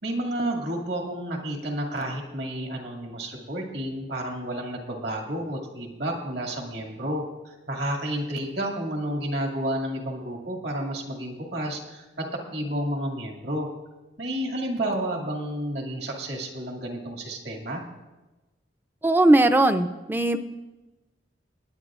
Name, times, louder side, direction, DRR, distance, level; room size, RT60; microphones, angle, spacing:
voice 1, 0.0-13.7 14.2-17.8, right 1 dB, 65° right, 1 dB, 2.1 m, -31 dB
voice 2, 19.0-20.4, right 1 dB, 10° right, 9 dB, 0.5 m, -19 dB
20.5 x 9.9 x 2.5 m, 1.1 s
head